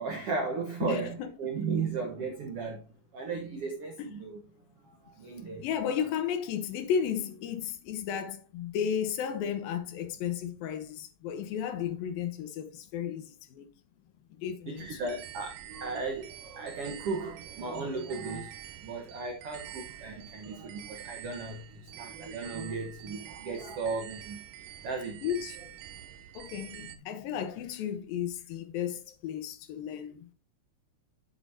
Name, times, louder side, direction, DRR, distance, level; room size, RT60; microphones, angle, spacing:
voice 1, 0.0-2.8 3.1-4.4 4.8-5.6 14.7-24.4 24.8-25.2, right 4 dB, 70° right, 1.4 m, -35 dB
voice 2, 0.8-1.3 4.0-4.1 5.6-13.7 14.4-15.1 25.2-25.6 26.3-30.3, left 8 dB, 75° left, 2.7 m, -34 dB
sound 1, 14.8-27.0, right 11 dB, 90° right, 2.8 m, -47 dB
8.3 x 7.8 x 2.7 m
omnidirectional pair, 4.4 m